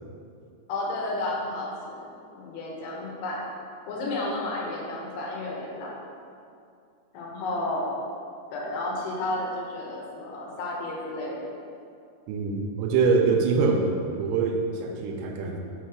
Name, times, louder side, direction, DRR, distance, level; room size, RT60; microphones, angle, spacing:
voice 1, 0.7-3.5 3.9-6.0 7.1-7.9 8.5-11.5 13.6-13.8, left 2 dB, 80° left, -3 dB, 2.9 m, -32 dB
voice 2, 12.3-15.6, right 4 dB, 90° right, 2 dB, 2.7 m, -24 dB
6.4 x 3.2 x 4.6 m, 2.4 s
omnidirectional pair, 4.8 m